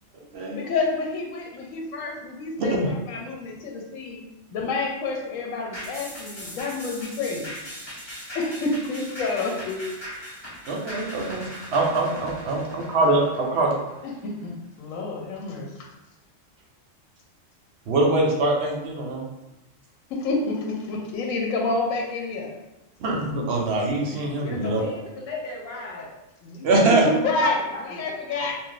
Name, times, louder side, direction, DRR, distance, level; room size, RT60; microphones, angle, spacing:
voice 1, 0.5-4.2 4.5-7.5 8.3-9.8 14.0-14.5 14.8-15.9 20.1-22.5 27.0-27.6 27.9-28.6, left 3 dB, 85° left, 0 dB, 1.0 m, -28 dB
voice 2, 2.6-2.9 10.7-13.8 17.9-19.3 23.0-24.8 26.6-27.0, right 2 dB, 65° right, -1 dB, 0.8 m, -23 dB
sound 1, 5.7-14.4 14.8-14.9, equal, 25° left, 0.8 m, -39 dB
voice 3, 24.4-26.1 26.4-27.9, left 3 dB, 65° left, -1 dB, 0.6 m, -35 dB
2.6 x 2.1 x 3.8 m, 0.97 s
omnidirectional pair, 1.3 m